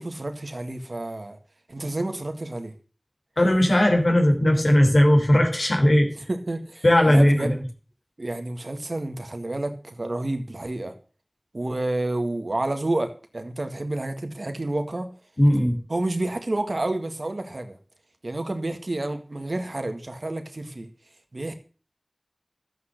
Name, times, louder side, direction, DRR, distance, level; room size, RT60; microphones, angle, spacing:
voice 1, 0.0-1.4 1.7-2.7 6.3-7.6 8.2-11.0 11.5-15.1 15.9-17.8 18.2-20.9 21.3-21.5, right 2 dB, 80° right, 1.9 m, -29 dB
voice 2, 3.4-6.1 6.8-7.5 15.4-15.8, left 1 dB, 80° left, 3.7 m, -18 dB
12.5 x 8.2 x 6.6 m
wide cardioid pair, 40°, 0 cm